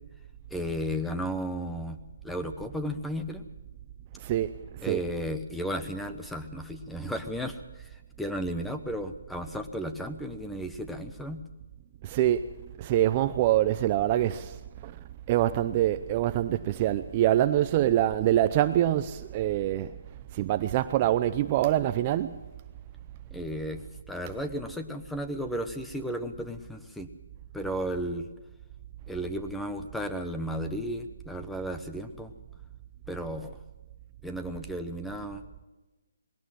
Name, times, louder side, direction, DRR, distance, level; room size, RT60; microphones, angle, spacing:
voice 1, 0.5-2.0 2.2-3.4 4.8-11.4 23.3-27.1 27.5-28.3 29.1-32.3 33.1-33.6 34.2-35.4, equal, ahead, 1.0 m, -34 dB
voice 2, 4.2-4.5 4.8-5.0 12.0-12.5 12.8-14.6 14.8-15.0 15.3-19.9 20.3-22.4, right 13 dB, 25° right, 0.6 m, -25 dB
20.5 x 17.5 x 7.5 m
hypercardioid pair, 160°, 0 cm